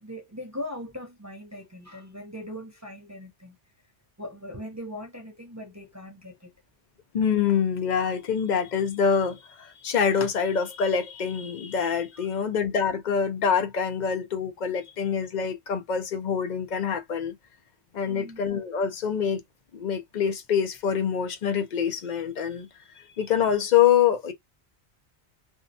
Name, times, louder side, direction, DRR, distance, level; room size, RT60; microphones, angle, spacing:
voice 1, 0.0-3.6 4.2-6.5 12.2-12.5 18.0-18.4, left 1 dB, 25° right, 0.4 m, -40 dB
voice 2, 7.1-17.3 17.9-19.4 19.7-22.7 23.0-24.3, left 7 dB, 50° left, 0.6 m, -25 dB
2.6 x 2.1 x 2.6 m
omnidirectional pair, 1.1 m